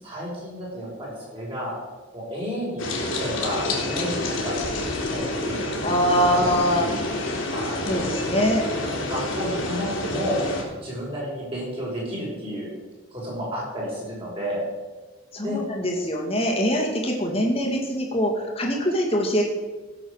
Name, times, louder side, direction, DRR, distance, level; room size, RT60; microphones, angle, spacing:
voice 1, 0.0-1.8 2.1-4.5 4.9-7.1 7.5-8.4 8.8-10.4 10.8-12.7 13.1-14.7 15.4-15.6, equal, 25° right, -4 dB, 5.5 m, -32 dB
sound 1, 2.8-10.6, left 2 dB, 75° left, 3.3 m, -28 dB
voice 2, 5.8-6.9 7.9-8.6 15.3-19.4, equal, 30° left, 0 dB, 2.4 m, -23 dB
16.0 x 7.8 x 6.6 m, 1.3 s
head